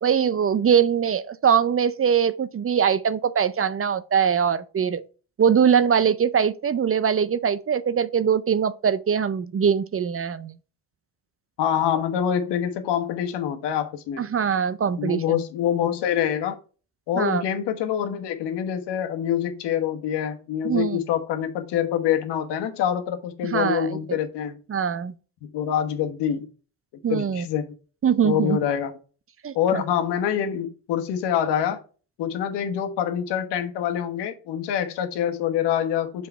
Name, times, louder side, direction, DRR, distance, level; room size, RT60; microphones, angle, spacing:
voice 1, 0.0-5.0 5.4-10.5 14.2-15.4 17.2-17.4 20.6-21.0 23.5-24.2 24.7-25.1 27.0-27.5 28.0-28.6 29.4-29.8, right 7 dB, 35° right, 0.6 m, -22 dB
voice 2, 11.6-14.3 15.0-16.6 17.1-24.6 25.4-26.5 27.1-27.7 28.2-28.9 29.5-31.8 32.2-36.3, left 9 dB, 80° left, 1.3 m, -25 dB
5.8 x 5.1 x 4.5 m
supercardioid pair, 70°, 41 cm